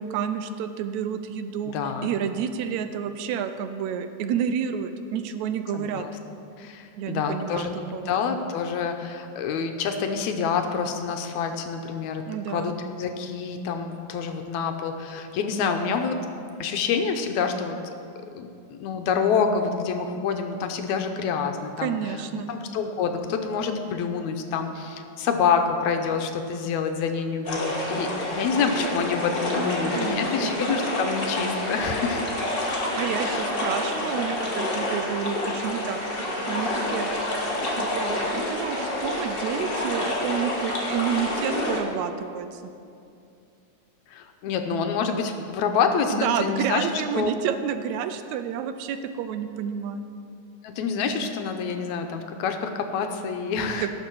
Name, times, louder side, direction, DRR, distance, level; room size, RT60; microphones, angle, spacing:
voice 1, 0.0-1.7 2.0-6.1 7.0-8.1 12.3-12.7 21.8-22.5 30.0-30.5 33.0-36.0 36.5-37.1 37.6-42.6 46.1-50.0 53.8-53.9, right 8 dB, 80° right, 9 dB, 1.9 m, -30 dB
voice 2, 1.7-2.1 5.7-6.1 6.6-12.7 13.0-16.2 16.6-17.8 18.4-22.0 22.5-32.2 33.2-33.5 44.1-46.9 47.1-47.3 50.6-53.9, left 6 dB, 80° left, 6 dB, 2.1 m, -27 dB
sound 1, 27.4-41.8, left 1 dB, 30° left, 1.1 m, -28 dB
17.5 x 6.8 x 4.6 m, 2.5 s
omnidirectional pair, 3.3 m